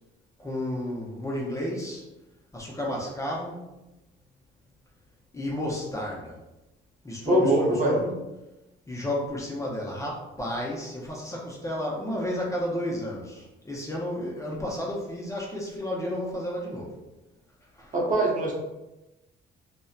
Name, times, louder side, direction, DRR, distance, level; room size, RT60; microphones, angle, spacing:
voice 1, 0.4-2.0 2.5-3.6 5.3-6.3 7.0-8.1 8.9-16.9 17.8-17.9, left 1 dB, 15° left, -4 dB, 0.5 m, -32 dB
voice 2, 7.2-7.9 17.9-18.5, right 1 dB, 40° right, -3 dB, 0.7 m, -22 dB
2.5 x 2.1 x 2.3 m, 0.99 s
cardioid pair, 90°, 20 cm